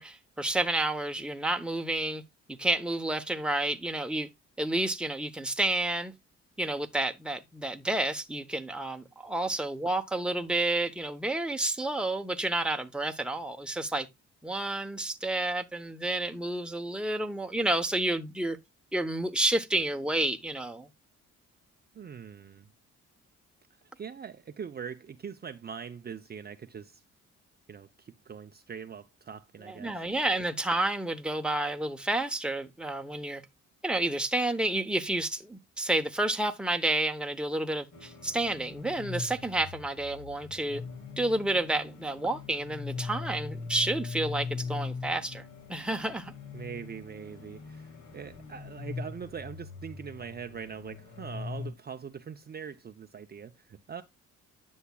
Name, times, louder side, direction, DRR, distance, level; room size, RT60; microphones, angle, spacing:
voice 1, 0.0-2.2 2.5-4.3 4.6-6.1 6.6-14.1 14.4-18.6 18.9-20.9 29.7-33.4 33.8-40.8 41.2-45.4 45.7-46.3, right 2 dB, 5° right, 0.9 m, -30 dB
voice 2, 21.9-22.7 24.0-27.0 27.7-30.0 46.5-54.0, right 7 dB, 30° right, 0.6 m, -42 dB
sound 1, 37.9-51.7, left 4 dB, 70° left, 2.2 m, -41 dB
10.0 x 7.2 x 2.3 m
cardioid pair, 90°, 30 cm